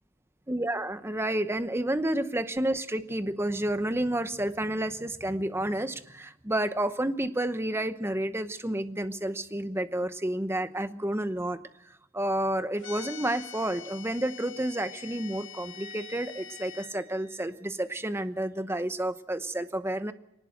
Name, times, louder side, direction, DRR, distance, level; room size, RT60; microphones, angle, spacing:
voice 1, 0.5-11.6 11.8-20.1, right 1 dB, 10° right, 11 dB, 0.9 m, -30 dB
sound 1, 12.8-16.9, left 8 dB, 65° left, 1.3 m, -45 dB
Wind instrument woodwind instrument, 14.7-18.2, left 1 dB, 85° right, 3.1 m, -52 dB
21.0 x 19.5 x 6.6 m, 0.87 s
head